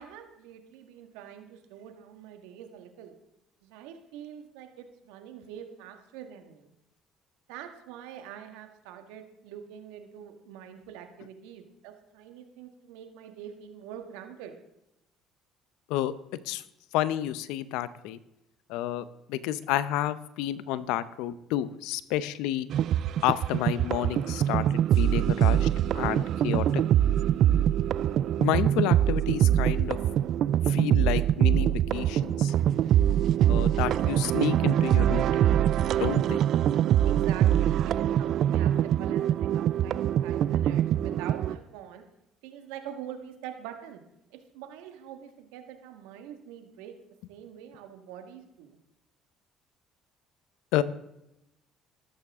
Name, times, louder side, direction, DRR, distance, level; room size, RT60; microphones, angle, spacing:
voice 1, 0.0-3.1 3.6-6.7 7.5-14.5 37.0-42.0 42.4-44.0 44.3-46.9 47.3-48.8, right 9 dB, 85° right, 6 dB, 1.7 m, -44 dB
voice 2, 16.9-18.2 18.7-22.7 23.2-25.7 25.9-26.8 28.4-30.0 30.7-32.5 33.5-35.5 36.0-36.4 50.7-50.8, left 13 dB, 80° left, 15 dB, 0.7 m, -30 dB
sound 1, 22.7-41.6, right 11 dB, 60° right, 0.3 m, -24 dB
13.5 x 13.0 x 3.6 m, 0.85 s
supercardioid pair, 75°, 0 cm